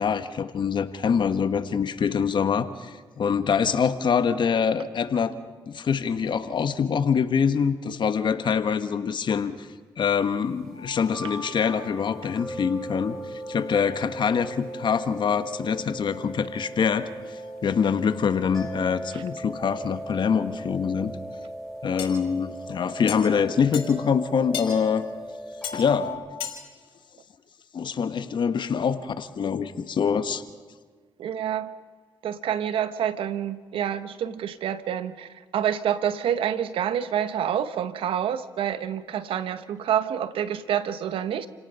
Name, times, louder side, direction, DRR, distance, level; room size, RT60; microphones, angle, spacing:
voice 1, 0.0-5.3 5.7-9.5 10.0-13.2 13.5-17.1 17.6-21.2 21.8-25.0 25.7-26.1 27.7-30.4, left 6 dB, 60° left, 11 dB, 1.3 m, -24 dB
sound 1, 10.7-26.2, equal, 5° left, 7.8 m, -38 dB
sound 2, 22.0-22.1 23.1-23.2 23.7-23.9 24.5-24.7 25.6-25.8 26.4-26.6, left 9 dB, 80° left, 3.9 m, -32 dB
voice 2, 31.2-31.7 32.2-41.5, right 9 dB, 80° right, 13 dB, 1.0 m, -27 dB
29.5 x 18.0 x 5.6 m, 1.5 s
cardioid pair, 70°, 9 cm